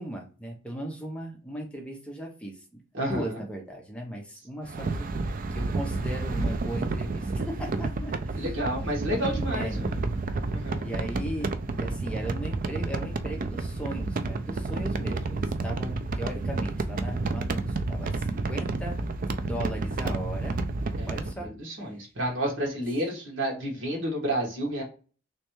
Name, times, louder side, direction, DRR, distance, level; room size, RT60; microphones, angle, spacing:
voice 1, 0.0-5.1 5.5-8.5 9.5-9.8 10.8-19.0 19.4-20.6 21.1-21.5, right 1 dB, 5° left, 1 dB, 0.7 m, -37 dB
voice 2, 2.9-3.4 8.4-10.0 10.5-10.8 21.0-21.2 21.4-24.8, equal, 75° right, -1 dB, 1.6 m, -30 dB
sound 1, 4.6-21.3, right 3 dB, 45° right, 0.4 m, -30 dB
3.2 x 3.2 x 3.0 m, 0.36 s
head